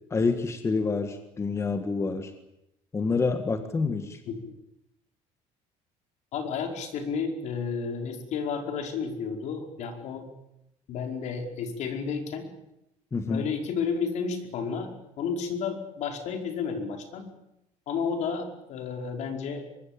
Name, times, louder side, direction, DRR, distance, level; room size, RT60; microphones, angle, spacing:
voice 1, 0.1-2.3 2.9-4.2 13.1-13.4, left 4 dB, 20° left, 8 dB, 1.8 m, -27 dB
voice 2, 6.3-10.3 10.9-12.5 13.3-17.3 17.9-19.6, left 5 dB, 60° left, 5 dB, 5.1 m, -32 dB
24.5 x 22.0 x 8.9 m, 0.85 s
cardioid pair, 145°, 13 cm